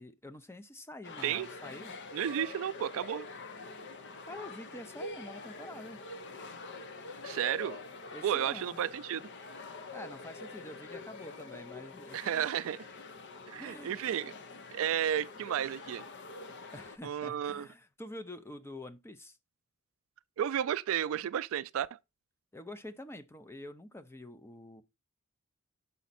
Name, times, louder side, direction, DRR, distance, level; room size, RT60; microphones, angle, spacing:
voice 1, 0.0-1.9 4.3-6.0 8.1-8.8 9.9-12.6 13.6-14.0 16.7-19.4 22.5-24.8, left 1 dB, 10° left, 0.5 m, -47 dB
sound 1, 1.0-17.0, left 3 dB, 55° left, 0.7 m, -46 dB
voice 2, 2.1-3.3 7.2-7.8 8.2-9.3 12.1-12.8 13.5-14.3 14.7-16.0 17.0-17.7 20.4-22.0, right 10 dB, 70° right, 0.3 m, -32 dB
7.0 x 5.1 x 4.1 m
head